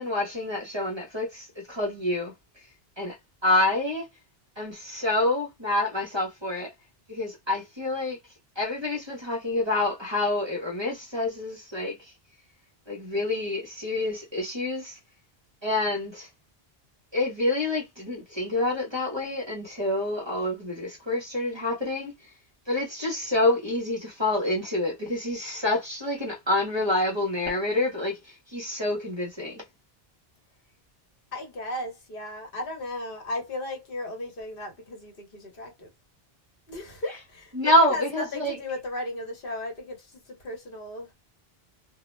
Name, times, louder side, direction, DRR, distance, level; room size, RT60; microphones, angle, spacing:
voice 1, 0.0-2.3 3.0-3.1 3.4-4.0 4.6-6.7 7.1-8.2 8.6-12.1 12.9-15.0 15.6-16.3 17.1-22.1 22.7-29.6 37.5-38.6, left 1 dB, 30° right, 0.7 m, -27 dB
voice 2, 31.3-35.9 36.7-41.1, left 1 dB, 60° left, 1.1 m, -36 dB
2.2 x 2.1 x 3.1 m
omnidirectional pair, 1.0 m